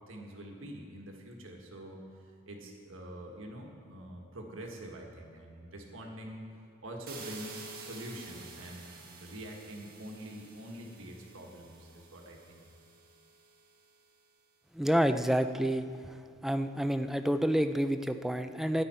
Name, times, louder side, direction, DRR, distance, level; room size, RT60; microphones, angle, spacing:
voice 1, 0.1-6.5 6.8-12.6, right 1 dB, 65° right, 1 dB, 1.6 m, -45 dB
sound 1, 7.1-13.9, right 3 dB, 45° right, 1.5 m, -50 dB
voice 2, 14.7-15.9 16.4-18.8, equal, ahead, 9 dB, 0.4 m, -28 dB
13.5 x 9.9 x 4.4 m, 2.4 s
head